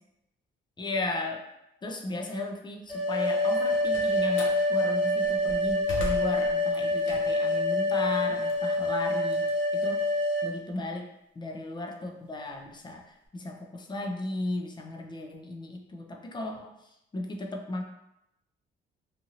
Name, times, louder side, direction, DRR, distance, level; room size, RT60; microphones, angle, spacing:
voice 1, 0.8-1.5 1.8-9.4 9.7-10.1 10.4-11.1 11.4-17.8, left 2 dB, 20° left, 2 dB, 0.5 m, -35 dB
sound 1, 2.9-10.5, left 1 dB, 5° right, 0.9 m, -26 dB
Slam, 3.5-4.6 5.2-7.5 8.0-10.3, left 1 dB, 75° left, 0.6 m, -40 dB
2.8 x 2.5 x 2.8 m, 0.83 s
cardioid pair, 90°, 20 cm